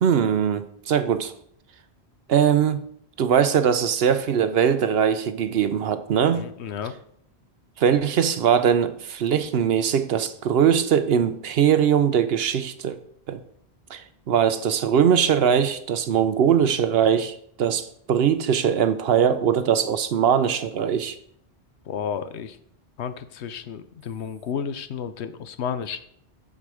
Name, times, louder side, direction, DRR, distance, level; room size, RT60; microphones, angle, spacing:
voice 1, 0.0-1.3 2.3-2.8 3.2-6.5 7.8-13.0 13.3-13.4 13.9-21.2, right 8 dB, 70° right, 11 dB, 0.9 m, -21 dB
voice 2, 6.3-6.9 21.9-22.6 23.0-26.0, left 7 dB, 80° left, 11 dB, 1.0 m, -32 dB
7.4 x 6.9 x 4.9 m, 0.67 s
omnidirectional pair, 1.1 m